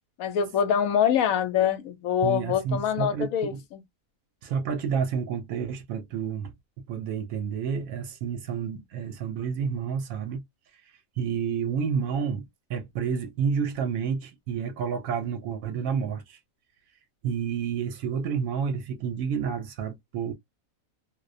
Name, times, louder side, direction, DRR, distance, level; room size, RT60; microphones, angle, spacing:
voice 1, 0.2-3.5, left 8 dB, 80° left, 1.0 m, -24 dB
voice 2, 2.2-3.6 4.4-6.5 6.9-10.4 10.8-16.4 17.2-20.3, right 6 dB, 90° right, 1.0 m, -30 dB
2.5 x 2.1 x 2.4 m
omnidirectional pair, 1.4 m